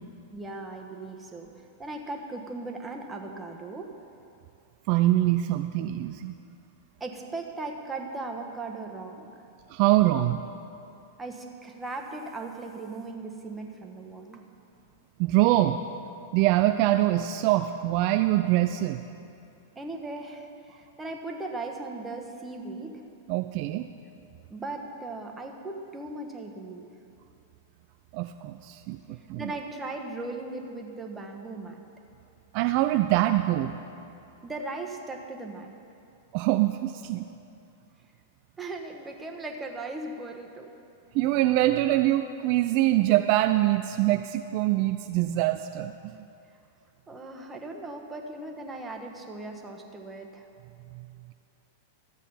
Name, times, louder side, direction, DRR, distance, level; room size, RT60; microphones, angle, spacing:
voice 1, 0.3-3.9 7.0-9.3 11.2-14.4 19.7-23.0 24.5-26.9 29.2-31.8 34.4-35.7 38.6-40.7 47.1-50.5, right 2 dB, 15° right, 2 dB, 1.3 m, -38 dB
voice 2, 4.9-6.4 9.7-10.4 15.2-15.8 16.3-19.0 23.3-23.9 28.1-29.5 32.5-33.8 36.3-37.3 41.1-46.1, right 15 dB, 50° right, 8 dB, 0.3 m, -24 dB
13.5 x 8.1 x 5.5 m, 2.6 s
hypercardioid pair, 100°, 0 cm